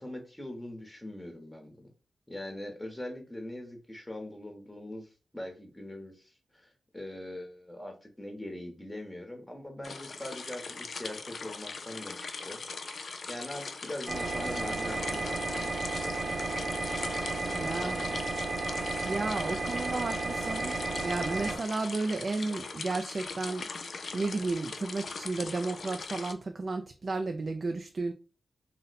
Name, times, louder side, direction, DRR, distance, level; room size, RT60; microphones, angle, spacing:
voice 1, 0.0-1.9 2.3-16.8 17.4-18.4, left 1 dB, 10° left, 0.9 m, -42 dB
sound 1, 9.8-26.3, left 4 dB, 65° left, 0.4 m, -41 dB
sound 2, 14.1-21.6, right 3 dB, 65° right, 0.8 m, -33 dB
voice 2, 17.6-18.0 19.1-23.7 24.1-28.1, right 3 dB, 50° right, 0.3 m, -33 dB
2.6 x 2.1 x 4.0 m
cardioid pair, 75°, 0 cm